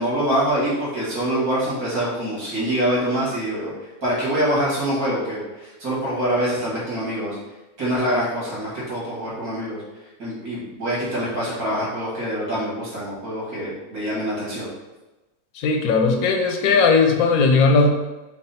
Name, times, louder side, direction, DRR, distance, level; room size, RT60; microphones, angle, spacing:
voice 1, 0.0-7.4 7.8-9.8 10.2-14.7, equal, 75° right, -7 dB, 2.2 m, -25 dB
voice 2, 15.6-17.9, left 4 dB, 85° left, 4 dB, 1.1 m, -17 dB
4.8 x 2.0 x 4.0 m, 1.1 s
omnidirectional pair, 1.5 m